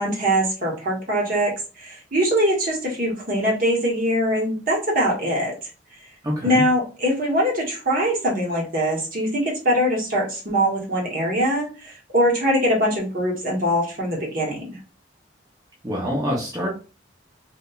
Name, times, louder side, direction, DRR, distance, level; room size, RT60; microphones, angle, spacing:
voice 1, 0.0-1.5 1.8-5.5 6.4-14.8, equal, 50° right, -2 dB, 0.9 m, -22 dB
voice 2, 6.2-6.6 15.8-16.7, equal, 20° right, -4 dB, 0.6 m, -25 dB
2.8 x 2.2 x 2.2 m, 0.34 s
head